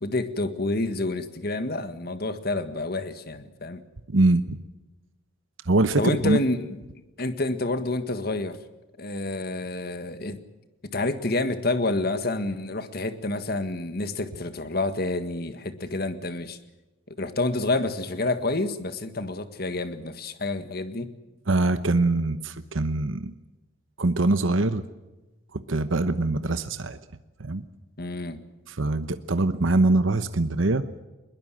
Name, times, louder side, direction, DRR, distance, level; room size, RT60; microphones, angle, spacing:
voice 1, 0.0-3.8 6.0-6.8 7.2-8.6 9.0-10.4 10.9-16.6 17.2-21.1 28.0-28.4, left 2 dB, 50° left, 10 dB, 1.7 m, -28 dB
voice 2, 4.1-4.6 5.7-6.4 21.5-23.3 24.0-24.8 25.5-27.0 27.4-27.6 28.7-30.9, right 2 dB, 75° right, 11 dB, 1.0 m, -23 dB
21.5 x 20.5 x 7.6 m, 1.1 s
head